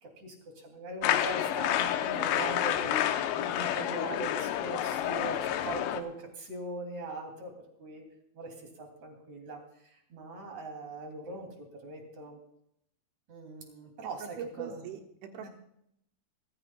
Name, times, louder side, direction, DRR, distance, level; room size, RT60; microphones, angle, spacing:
voice 1, 0.0-7.5 7.8-8.0 8.3-11.5 11.8-12.4 13.3-14.8 15.4-15.5, right 2 dB, 40° right, 2 dB, 3.6 m, -41 dB
sound 1, 1.0-6.0, left 11 dB, 80° left, 2.6 m, -29 dB
voice 2, 14.2-15.5, right 7 dB, 75° right, 3 dB, 3.8 m, -41 dB
24.5 x 14.5 x 2.3 m, 0.76 s
omnidirectional pair, 5.6 m